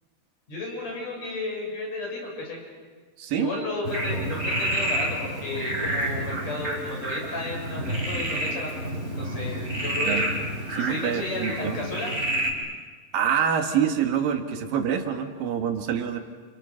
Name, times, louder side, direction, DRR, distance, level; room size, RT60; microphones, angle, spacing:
voice 1, 0.5-2.6 3.3-8.7 9.2-10.3 10.8-12.1, left 2 dB, 50° left, -1 dB, 7.8 m, -33 dB
voice 2, 3.2-3.5 10.1-10.2 10.7-11.9 13.1-16.2, right 8 dB, 90° right, 5 dB, 3.6 m, -26 dB
Frog, 3.8-12.5, right 1 dB, 20° right, 4.8 m, -29 dB
29.5 x 29.0 x 6.5 m, 1.4 s
omnidirectional pair, 3.9 m